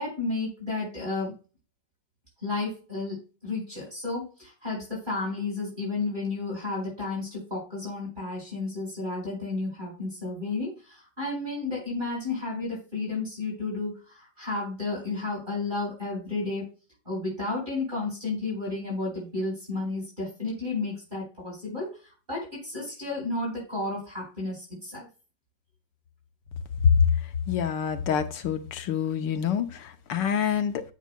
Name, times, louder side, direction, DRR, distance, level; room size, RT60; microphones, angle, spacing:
voice 1, 0.0-1.3 2.4-16.7 17.0-25.1, left 3 dB, 25° right, 4.5 m, -32 dB
voice 2, 27.5-30.8, left 7 dB, 80° left, 1.4 m, -25 dB
9.3 x 7.1 x 2.2 m
omnidirectional pair, 2.0 m